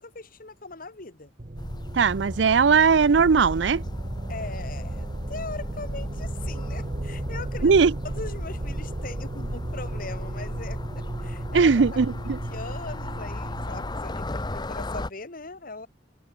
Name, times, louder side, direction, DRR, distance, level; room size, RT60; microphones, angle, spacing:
voice 1, 0.0-1.3 4.3-7.8 8.0-15.9, left 3 dB, 50° left, 2.0 m, -40 dB
sound 1, 1.4-14.0, right 1 dB, 40° right, 1.2 m, -34 dB
sound 2, 1.6-15.1, left 2 dB, 25° left, 0.9 m, -38 dB
voice 2, 1.9-3.8 7.6-7.9 11.5-12.4, right 5 dB, 70° right, 0.5 m, -19 dB
head